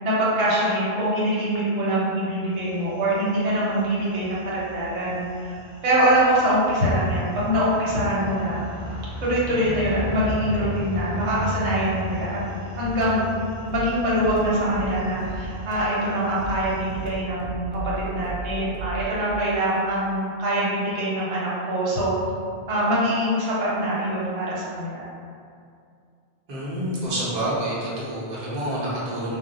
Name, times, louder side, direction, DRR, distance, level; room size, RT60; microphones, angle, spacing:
voice 1, 0.0-5.5 5.8-8.6 9.2-12.4 12.8-13.3 13.7-22.1 22.7-25.1, right 1 dB, 80° right, -7 dB, 1.0 m, -24 dB
sound 1, 2.6-17.2, left 1 dB, 5° left, 0.9 m, -36 dB
sound 2, 12.8-16.0 16.4-19.0, right 2 dB, 55° left, 0.3 m, -35 dB
voice 2, 26.5-29.4, right 1 dB, 45° right, -8 dB, 0.8 m, -28 dB
2.1 x 2.1 x 3.7 m, 2.3 s
omnidirectional pair, 1.2 m